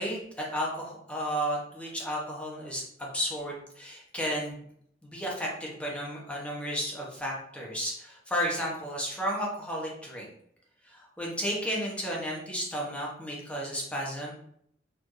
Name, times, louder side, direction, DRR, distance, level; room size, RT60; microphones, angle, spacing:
voice 1, 0.0-4.6 5.0-10.3 10.8-14.3, equal, 5° left, -4 dB, 0.9 m, -33 dB
4.5 x 2.6 x 3.0 m, 0.68 s
head